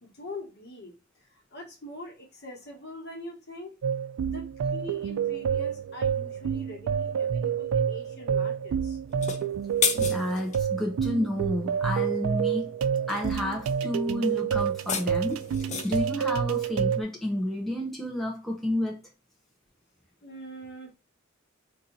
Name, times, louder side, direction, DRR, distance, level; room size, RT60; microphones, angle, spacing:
voice 1, 0.0-3.8 4.2-9.0 20.2-20.9, left 1 dB, 55° left, 1.3 m, -43 dB
sound 1, 3.8-17.0, right 7 dB, 80° right, 0.3 m, -28 dB
sound 2, 9.1-10.6 14.6-16.1, left 6 dB, 35° left, 0.5 m, -31 dB
voice 2, 9.9-12.7 13.1-15.4 15.8-19.0, left 1 dB, ahead, 0.7 m, -30 dB
2.8 x 2.6 x 3.8 m
head